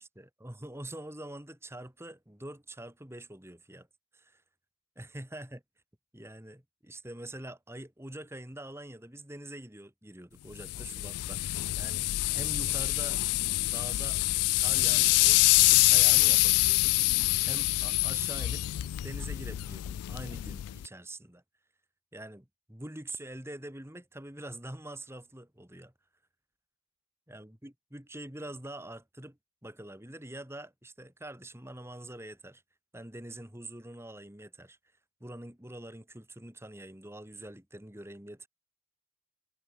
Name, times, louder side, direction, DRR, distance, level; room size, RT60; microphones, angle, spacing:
voice 1, 0.0-3.9 4.1-4.4 5.0-5.6 6.1-13.2 13.6-14.2 14.6-17.2 17.4-18.7 18.9-21.4 22.1-25.9 27.3-32.6 32.9-34.8 35.2-38.5, right 1 dB, 10° right, 1.8 m, -45 dB
sound 1, 10.6-20.9, left 20 dB, 90° left, 0.3 m, -26 dB
head